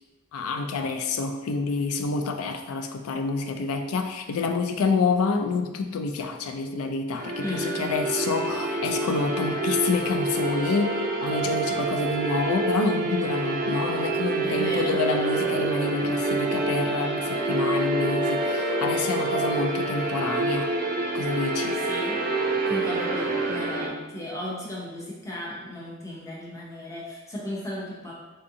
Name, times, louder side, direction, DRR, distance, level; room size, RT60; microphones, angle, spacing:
voice 1, 0.3-20.7 21.1-21.8, left 4 dB, 80° left, 6 dB, 0.4 m, -28 dB
sound 1, 7.1-23.9, right 2 dB, 40° right, 0.4 m, -27 dB
voice 2, 7.4-8.0 14.4-15.0 21.9-22.3 22.7-28.2, left 1 dB, 15° left, -5 dB, 0.7 m, -35 dB
3.6 x 2.5 x 2.7 m, 1.1 s
head